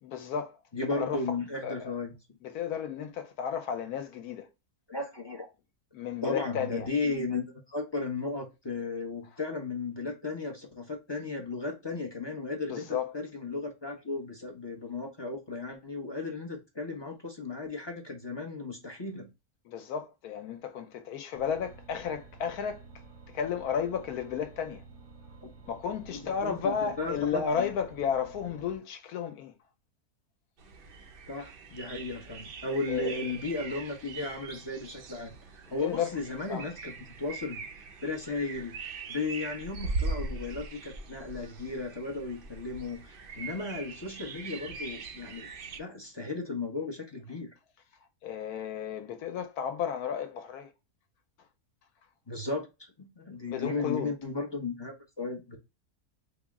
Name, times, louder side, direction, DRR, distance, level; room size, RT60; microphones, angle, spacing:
voice 1, 0.0-0.6 0.9-1.4 1.6-1.9 2.4-4.5 5.9-6.9 12.7-13.1 19.6-24.8 25.7-29.5 32.9-33.2 35.8-36.1 36.5-36.7 48.2-50.7 53.5-54.1, left 7 dB, 75° left, 1.1 m, -33 dB
voice 2, 0.7-2.1 4.9-5.5 6.2-19.3 26.1-27.7 31.3-35.3 35.7-38.8 39.1-45.5 45.7-47.5 52.3-52.7 53.0-55.6, left 3 dB, 45° left, 0.3 m, -35 dB
sound 1, 21.3-28.8, right 3 dB, 85° right, 1.5 m, -51 dB
sound 2, 30.6-45.8, right 3 dB, 70° right, 0.5 m, -41 dB
4.0 x 2.0 x 3.4 m
omnidirectional pair, 1.7 m